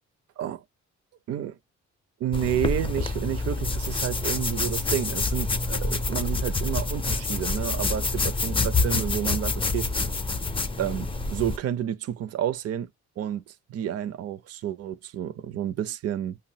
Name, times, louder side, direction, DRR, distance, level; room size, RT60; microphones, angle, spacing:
voice 1, 1.3-1.6 2.2-9.9 10.8-12.9 13.2-16.4, right 10 dB, 55° right, 0.5 m, -30 dB
sound 1, 2.3-11.6, left 3 dB, 20° left, 0.5 m, -27 dB
5.3 x 2.0 x 2.6 m
cardioid pair, 90°, 29 cm